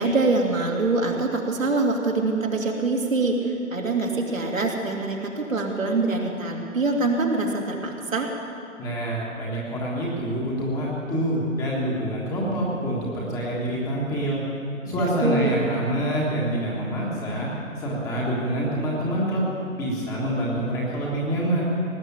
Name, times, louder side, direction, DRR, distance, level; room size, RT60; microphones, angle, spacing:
voice 1, 0.0-8.3 14.8-15.5, right 3 dB, 75° right, 0 dB, 2.5 m, -24 dB
voice 2, 8.8-14.4 14.9-17.5 17.8-19.4 19.8-21.6, right 1 dB, 10° left, -5 dB, 1.4 m, -26 dB
18.5 x 7.5 x 8.8 m, 2.9 s
figure-of-eight pair, 150°, 41 cm